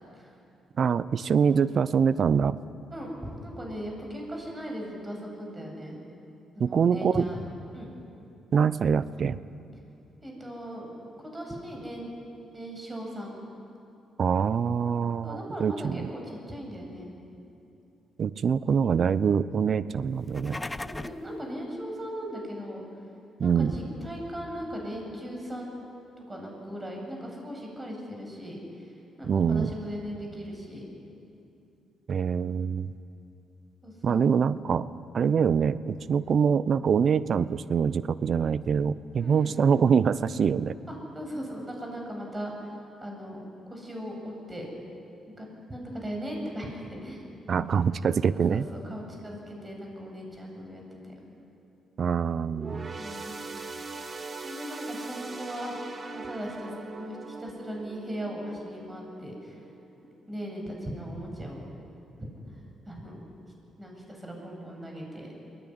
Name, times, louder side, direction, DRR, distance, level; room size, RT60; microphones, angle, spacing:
voice 1, 0.8-2.6 6.6-7.3 8.5-9.4 14.2-16.1 18.2-20.6 23.4-23.7 29.2-29.7 32.1-32.9 34.0-34.9 35.1-40.8 47.5-48.7 52.0-52.9, right 6 dB, 60° right, 17 dB, 0.7 m, -24 dB
voice 2, 2.9-6.0 6.5-7.4 7.7-7.9 10.2-10.9 11.2-12.1 12.5-13.3 15.2-17.1 20.8-22.8 23.4-25.7 26.3-28.9 29.2-30.8 33.8-34.3 39.2-39.6 40.9-42.7 43.0-44.7 45.4-47.2 47.6-47.7 48.5-51.1 52.9-53.3 54.4-55.8 56.1-59.6 60.3-61.6 62.9-63.3 63.8-65.3, equal, 25° right, 0 dB, 7.7 m, -38 dB
sound 1, 20.1-21.3, left 2 dB, 20° left, 0.7 m, -37 dB
sound 2, 52.5-60.2 60.6-60.8 61.7-61.8, right 3 dB, 40° right, 2.0 m, -41 dB
22.0 x 18.0 x 9.7 m, 2.7 s
supercardioid pair, 55°, 0 cm